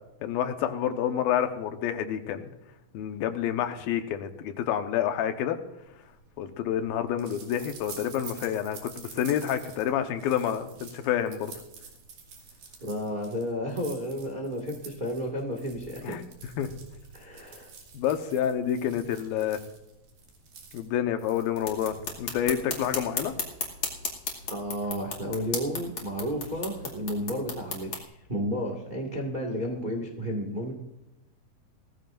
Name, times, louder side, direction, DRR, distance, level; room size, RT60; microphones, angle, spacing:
voice 1, 0.2-2.5 2.9-5.6 6.4-11.5 16.0-16.2 16.6-16.7 17.9-19.6 20.7-23.3, left 9 dB, 85° left, 7 dB, 2.9 m, -28 dB
sound 1, 6.0-23.4, right 5 dB, 75° right, 4.2 m, -48 dB
voice 2, 12.8-16.2 17.1-17.7 18.9-19.0 24.5-30.7, equal, 25° right, 1 dB, 1.1 m, -32 dB
sound 2, 21.6-28.0, left 4 dB, 40° left, 2.7 m, -35 dB
19.5 x 14.5 x 2.6 m, 0.91 s
omnidirectional pair, 4.1 m